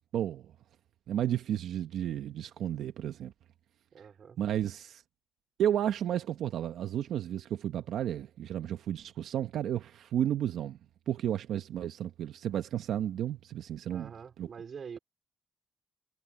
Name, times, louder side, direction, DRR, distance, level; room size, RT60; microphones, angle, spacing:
voice 1, 0.1-0.5 1.1-3.3 4.4-5.0 5.6-10.8 11.1-14.1 14.4-14.5, right 10 dB, 75° right, 1.1 m, -32 dB
voice 2, 3.9-4.4 13.8-15.0, right 6 dB, 50° right, 3.9 m, -45 dB
cardioid pair, 90°, 0 cm